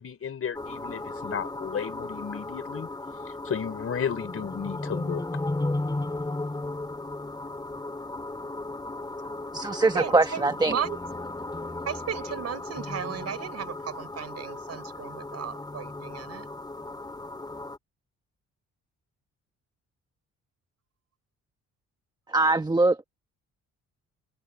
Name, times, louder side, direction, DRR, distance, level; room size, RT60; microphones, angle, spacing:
voice 1, 0.0-2.9 3.4-5.2, left 7 dB, 50° left, 4.7 m, -33 dB
sound 1, 0.5-17.8, left 2 dB, 15° left, 3.2 m, -35 dB
voice 2, 9.3-10.8 22.3-23.0, right 2 dB, 15° right, 1.1 m, -23 dB
voice 3, 9.9-11.0 11.9-16.5, right 8 dB, 55° right, 4.8 m, -35 dB
cardioid pair, 90°, 30 cm